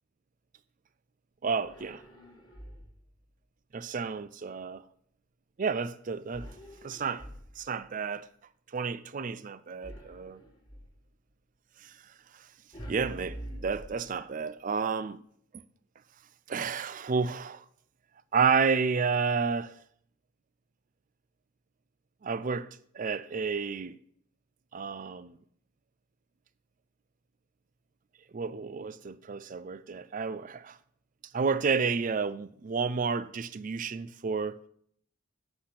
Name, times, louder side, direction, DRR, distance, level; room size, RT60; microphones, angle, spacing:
voice 1, 1.4-2.0 3.7-4.8 5.6-6.5 6.8-7.3 7.6-8.3 8.7-10.4 11.8-12.0 12.3-12.5 12.9-15.2 16.5-17.6 18.3-19.8 22.2-22.7 22.9-24.0 24.7-25.4 28.3-30.8 31.3-34.7, right 5 dB, 40° right, 0.4 m, -31 dB
sound 1, 1.6-3.1 6.3-7.9 9.8-11.0 12.7-14.4, equal, 20° left, 1.7 m, -46 dB
8.4 x 5.8 x 5.8 m
head